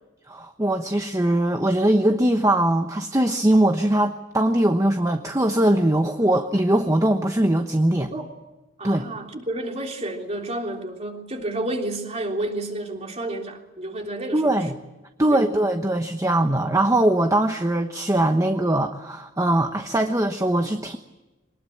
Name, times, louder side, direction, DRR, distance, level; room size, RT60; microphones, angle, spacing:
voice 1, 0.3-8.1 8.8-9.1 14.3-14.8 15.2-21.0, right 1 dB, 15° right, 6 dB, 1.0 m, -21 dB
voice 2, 8.8-14.5 15.2-15.4, right 1 dB, 35° right, 2 dB, 3.3 m, -30 dB
23.0 x 20.0 x 8.7 m, 1.1 s
head